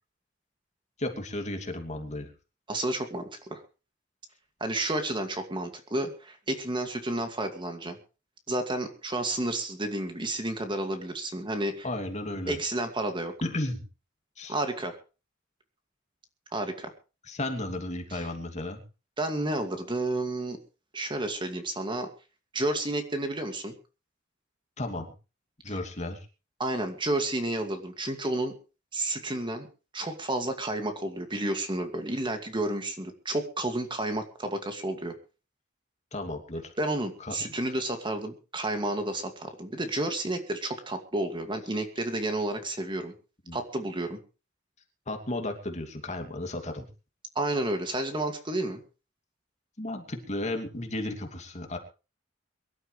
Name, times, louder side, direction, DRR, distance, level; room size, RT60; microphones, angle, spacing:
voice 1, 1.0-2.3 11.8-12.5 13.4-13.8 14.4-14.5 17.3-18.8 24.8-25.1 25.6-26.2 36.1-36.7 37.2-37.3 43.5-43.6 45.1-46.9 49.8-51.8, left 1 dB, 35° left, 5 dB, 2.7 m, -34 dB
voice 2, 2.7-3.6 4.6-8.0 8.5-11.9 12.5-13.3 14.5-15.0 16.5-16.9 18.1-18.3 19.2-20.6 20.9-22.1 22.5-23.7 25.7-25.8 26.6-28.5 28.9-29.7 29.9-35.1 36.8-43.1 43.5-44.2 47.4-48.8, right 1 dB, 25° right, 6 dB, 2.3 m, -31 dB
23.5 x 12.5 x 3.3 m, 0.33 s
head